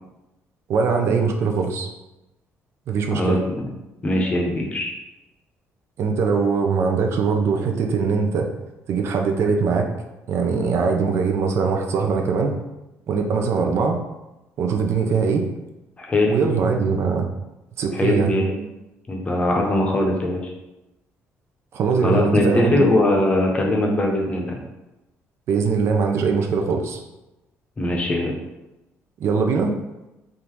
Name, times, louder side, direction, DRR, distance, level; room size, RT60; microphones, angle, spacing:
voice 1, 0.7-1.9 2.9-3.4 6.0-8.5 8.9-9.9 10.3-12.6 13.1-14.0 14.6-15.4 16.3-17.2 17.8-18.3 21.7-22.9 25.5-27.0 29.2-29.7, right 5 dB, 60° right, 3 dB, 0.5 m, -21 dB
voice 2, 3.1-3.6 4.0-4.9 16.0-16.4 17.9-18.6 19.1-20.4 22.0-24.6 27.8-28.3, left 1 dB, 25° left, 1 dB, 0.7 m, -21 dB
3.6 x 2.6 x 4.5 m, 0.98 s
cardioid pair, 135°, 5 cm